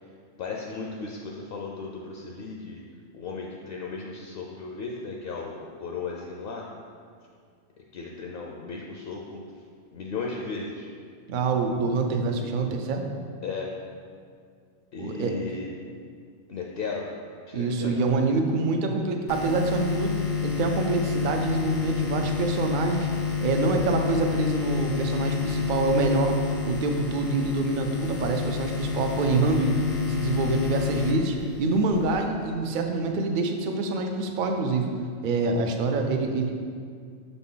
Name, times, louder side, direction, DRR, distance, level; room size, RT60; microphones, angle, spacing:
voice 1, 0.4-2.8 3.1-6.7 7.9-9.4 9.9-10.9 13.4-13.8 14.9-15.7 16.5-17.2 17.5-18.3, left 4 dB, 60° left, -1 dB, 0.7 m, -35 dB
voice 2, 11.3-13.1 15.0-15.3 17.5-20.2 20.4-23.1 23.4-26.4 26.7-29.8 30.1-34.9 35.2-36.5, right 3 dB, 55° right, 4 dB, 0.6 m, -26 dB
sound 1, 19.3-32.2, left 6 dB, 85° left, 1.0 m, -29 dB
6.4 x 4.0 x 3.8 m, 2.1 s
omnidirectional pair, 1.2 m